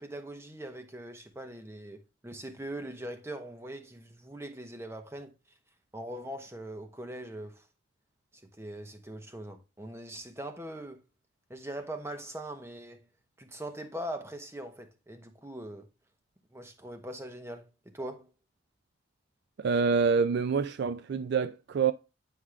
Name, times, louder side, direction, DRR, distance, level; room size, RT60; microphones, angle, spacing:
voice 1, 0.0-5.3 5.9-7.7 8.3-11.0 11.5-13.1 13.4-15.9 16.5-18.3, right 1 dB, 10° right, 0.9 m, -41 dB
voice 2, 19.6-21.9, right 5 dB, 50° right, 0.3 m, -26 dB
9.4 x 4.9 x 2.4 m
head